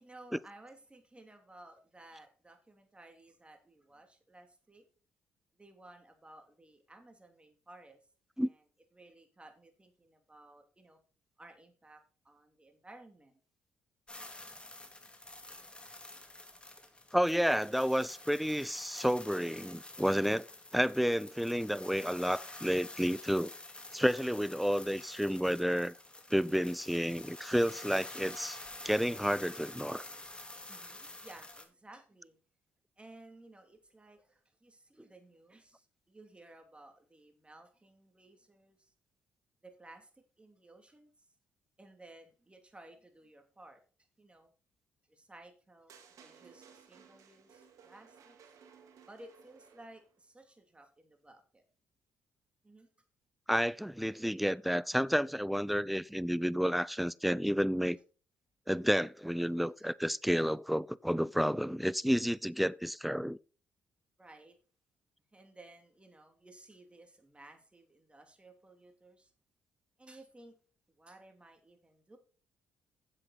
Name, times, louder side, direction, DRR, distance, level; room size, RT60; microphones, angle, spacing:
voice 1, 0.0-4.9 5.6-8.0 8.4-8.6 8.9-11.0 11.4-13.4 30.7-32.4 33.0-38.9 39.6-41.3 41.8-43.8 44.2-44.5 45.1-48.4 49.1-51.6 52.6-52.9 59.8-59.9 64.2-64.6 65.3-69.3 70.0-70.6 70.9-72.2, right 2 dB, 20° right, 2.8 m, -56 dB
sound 1, 14.1-31.6, left 2 dB, 15° left, 2.7 m, -49 dB
voice 2, 17.1-20.5 20.7-23.5 23.9-25.9 26.3-28.6 28.8-30.1 53.5-58.0 58.7-63.4, equal, ahead, 0.5 m, -30 dB
sound 2, 45.9-50.2, right 6 dB, 70° right, 2.1 m, -59 dB
9.9 x 7.7 x 4.2 m
supercardioid pair, 55°, 6 cm